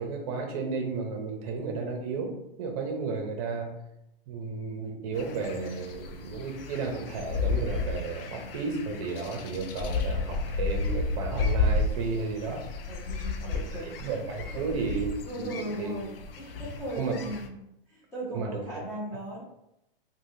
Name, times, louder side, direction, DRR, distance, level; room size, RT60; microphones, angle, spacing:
voice 1, 0.0-3.7 4.3-12.6 13.4-13.6 14.0-15.1 15.4-15.9 17.0-17.1 18.3-18.8, right 4 dB, 40° right, 3 dB, 0.7 m, -33 dB
sound 1, 5.2-17.5, left 3 dB, 70° left, 0.5 m, -32 dB
voice 2, 12.9-13.9 14.5-14.6 15.2-17.6 17.9-19.4, right 1 dB, 10° left, -8 dB, 0.7 m, -37 dB
3.3 x 2.3 x 2.7 m, 0.82 s
hypercardioid pair, 150°, 29 cm